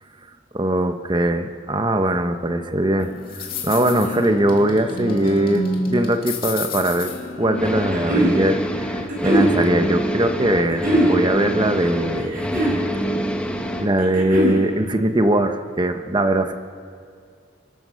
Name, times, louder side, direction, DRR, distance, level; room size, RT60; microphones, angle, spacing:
voice 1, 0.5-7.1 7.4-12.4 13.8-16.5, right 1 dB, 25° right, 7 dB, 1.1 m, -21 dB
sound 1, 3.0-8.8, left 2 dB, 50° left, 2.6 m, -30 dB
sound 2, 7.5-13.9, equal, 5° left, 1.2 m, -26 dB
sound 3, 7.6-8.4 9.1-9.5 10.7-11.1 12.2-12.8 14.0-14.6, right 1 dB, 50° right, 7.4 m, -20 dB
29.5 x 14.0 x 6.5 m, 2.2 s
head